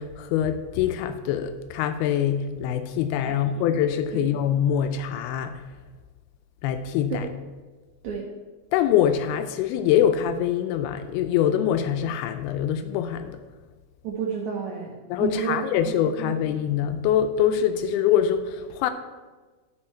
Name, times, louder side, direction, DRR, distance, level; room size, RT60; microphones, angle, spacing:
voice 1, 0.0-5.6 6.6-7.3 8.7-13.4 15.1-18.9, left 9 dB, 90° left, 2.5 m, -24 dB
voice 2, 14.0-15.6 15.9-16.4, right 7 dB, 85° right, 1.6 m, -31 dB
13.0 x 4.5 x 4.4 m
omnidirectional pair, 4.4 m